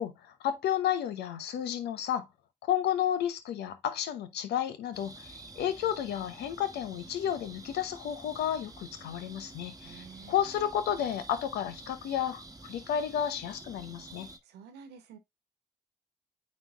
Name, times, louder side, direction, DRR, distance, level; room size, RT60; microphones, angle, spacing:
voice 1, 0.0-2.3 2.6-14.3, left 10 dB, 80° left, 0.9 m, -32 dB
sound 1, 4.9-14.4, right 2 dB, 20° right, 1.2 m, -49 dB
voice 2, 9.8-10.4 14.4-15.2, right 6 dB, 85° right, 1.2 m, -50 dB
9.0 x 3.3 x 3.4 m
hypercardioid pair, 40°, 17 cm